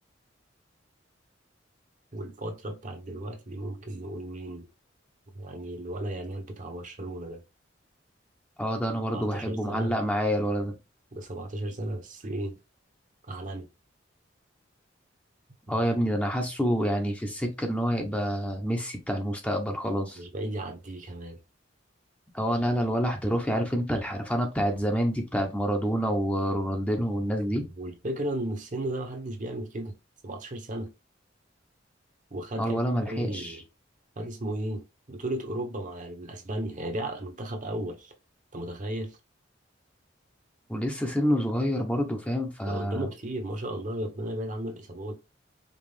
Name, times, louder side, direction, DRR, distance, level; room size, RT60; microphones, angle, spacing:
voice 1, 2.1-4.7 5.3-7.4 9.1-9.9 11.1-12.6 13.2-13.7 15.7-15.8 20.2-21.4 27.4-30.0 30.2-30.9 32.3-32.8 33.1-33.6 34.2-38.1 38.5-39.2 42.7-45.1, right 1 dB, 45° right, 0.9 m, -35 dB
voice 2, 8.6-10.7 15.7-20.2 22.3-27.7 32.6-33.6 40.7-43.1, equal, 5° left, 0.7 m, -27 dB
5.2 x 2.4 x 3.3 m
head